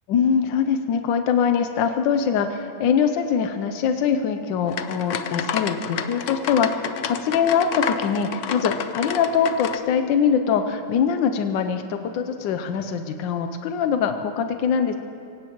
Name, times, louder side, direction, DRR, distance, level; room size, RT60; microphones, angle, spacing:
voice 1, 0.1-15.0, left 7 dB, 85° left, 7 dB, 1.4 m, -23 dB
sound 1, 4.7-9.8, left 7 dB, 65° left, 0.8 m, -29 dB
25.0 x 17.0 x 3.0 m, 2.6 s
omnidirectional pair, 2.0 m